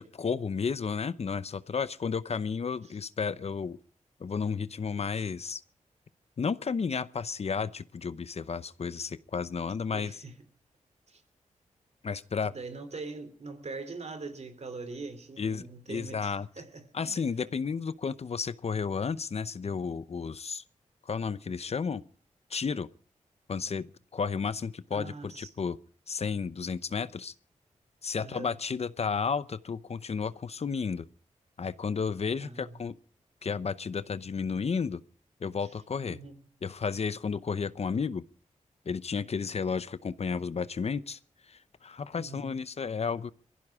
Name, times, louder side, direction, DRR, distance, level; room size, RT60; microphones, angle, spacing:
voice 1, 0.0-3.8 4.2-5.6 6.4-10.2 12.0-12.5 15.4-16.5 16.9-20.6 21.1-22.0 22.5-22.9 23.5-25.8 26.1-27.3 28.0-31.0 31.6-33.0 33.4-35.0 35.4-36.2 36.6-38.2 38.9-41.2 41.5-43.3, left 5 dB, 55° left, 0.8 m, -32 dB
voice 2, 9.9-10.4 11.1-11.2 12.4-16.9 17.1-17.3 24.9-25.5 28.2-28.6 32.4-32.8 35.6-35.7 36.1-36.5 42.1-42.6, right 3 dB, 60° right, 3.2 m, -42 dB
22.5 x 15.5 x 3.6 m
cardioid pair, 65°, 13 cm